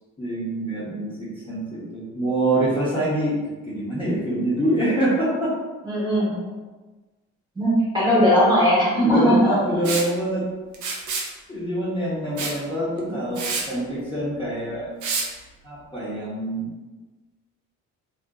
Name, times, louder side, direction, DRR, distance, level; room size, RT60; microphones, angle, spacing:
voice 1, 0.2-5.5 9.0-10.4 11.5-14.9 15.6-16.7, right 1 dB, 15° left, -9 dB, 0.8 m, -25 dB
voice 2, 5.8-6.4 7.6-9.6 13.1-13.4, equal, 15° right, -7 dB, 1.0 m, -19 dB
Liquid, 9.8-10.1 10.7-11.3 12.4-12.6 13.0-13.1 13.4-13.7 15.0-15.3, right 4 dB, 75° right, 0.5 m, -27 dB
2.5 x 2.4 x 2.3 m, 1.2 s
cardioid pair, 90°, 30 cm